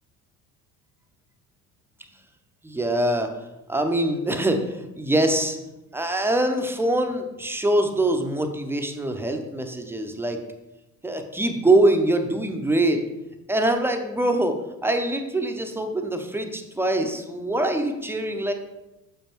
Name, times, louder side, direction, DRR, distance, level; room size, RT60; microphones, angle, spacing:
voice 1, 2.6-3.3 3.7-5.6 5.9-10.4 11.0-13.0 13.5-18.5, right 1 dB, 5° right, 5 dB, 0.6 m, -23 dB
6.6 x 5.5 x 3.0 m, 0.99 s
figure-of-eight pair, 60°, 48 cm